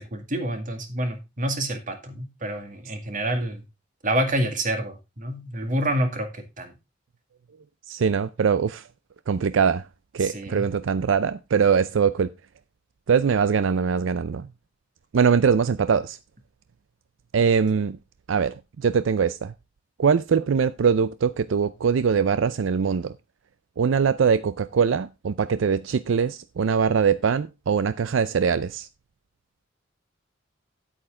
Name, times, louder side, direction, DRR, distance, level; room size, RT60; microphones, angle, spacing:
voice 1, 0.0-3.6 4.0-6.7 10.2-10.7, right 1 dB, 45° right, 2.1 m, -28 dB
voice 2, 7.9-8.8 9.3-9.9 10.1-12.3 13.1-14.5 15.1-16.2 17.3-18.0 18.3-19.5 20.0-23.1 23.8-28.9, right 6 dB, 85° right, 0.4 m, -22 dB
9.0 x 8.6 x 3.7 m
head